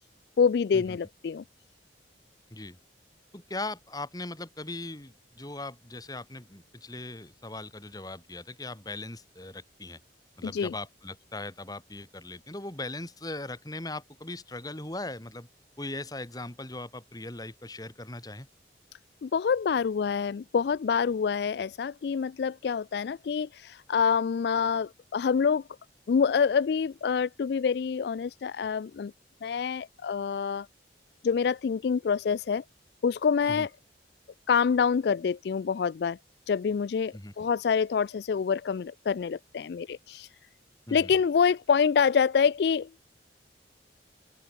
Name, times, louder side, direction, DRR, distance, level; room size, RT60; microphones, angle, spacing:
voice 1, 0.4-1.4 10.4-10.7 19.2-25.6 26.1-29.1 29.4-30.7 31.2-32.6 33.0-33.7 34.5-36.2 36.5-40.3 40.9-42.9, left 6 dB, 60° left, 0.3 m, -26 dB
voice 2, 3.3-10.0 10.4-15.5 15.8-18.5 33.5-33.7 37.1-37.3 40.9-41.1, left 2 dB, 20° left, 2.3 m, -39 dB
open air
head